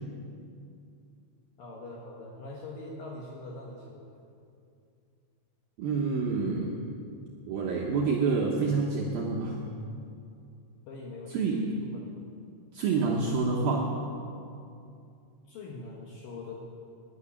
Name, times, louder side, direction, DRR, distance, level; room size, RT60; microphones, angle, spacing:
voice 1, 1.6-4.1 10.9-11.3 11.8-12.1 15.5-16.5, left 2 dB, 70° left, -2 dB, 2.3 m, -42 dB
voice 2, 5.8-6.8 7.5-9.6 11.3-11.7 12.7-13.9, right 4 dB, 80° right, -2 dB, 2.1 m, -27 dB
11.0 x 9.8 x 9.8 m, 2.5 s
omnidirectional pair, 5.6 m